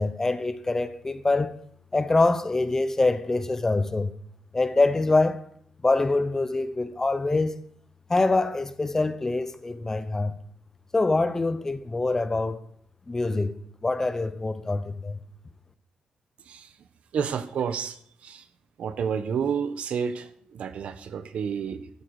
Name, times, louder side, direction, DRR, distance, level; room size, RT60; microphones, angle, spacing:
voice 1, 0.0-1.6 1.9-4.1 4.5-5.4 5.8-7.5 8.1-10.3 10.9-12.6 13.1-13.5 13.8-15.2, left 2 dB, 20° left, 0.8 m, -24 dB
voice 2, 16.4-16.9 17.1-18.5 18.8-21.9, right 7 dB, 70° right, 1.1 m, -30 dB
13.0 x 12.5 x 4.9 m
cardioid pair, 105°, 2 cm